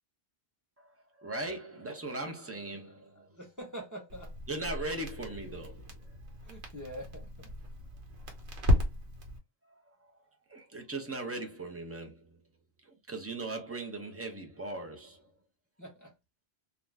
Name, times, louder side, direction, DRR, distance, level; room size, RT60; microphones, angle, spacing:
voice 1, 0.8-3.3 4.5-6.2 9.8-10.1 10.5-12.3 12.8-15.3, right 2 dB, 20° right, 0.4 m, -39 dB
voice 2, 3.0-4.3 6.4-7.5 15.8-16.1, equal, 20° left, 0.8 m, -45 dB
Crackle, 4.1-9.4, left 1 dB, 85° right, 1.2 m, -34 dB
2.4 x 2.2 x 3.2 m
omnidirectional pair, 1.1 m